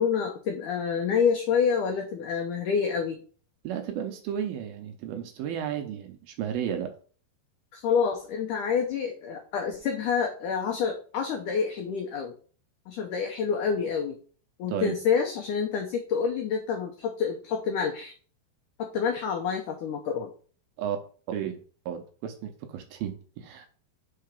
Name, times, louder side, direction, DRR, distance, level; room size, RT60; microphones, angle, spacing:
voice 1, 0.0-3.2 7.7-12.3 12.9-14.2 14.6-18.1 18.8-20.3, left 6 dB, 90° left, 1.7 m, -28 dB
voice 2, 3.6-6.9 14.7-15.0 20.8-21.0 21.3-21.6 21.9-23.7, right 9 dB, 75° right, 2.4 m, -33 dB
5.6 x 4.6 x 5.1 m
omnidirectional pair, 4.7 m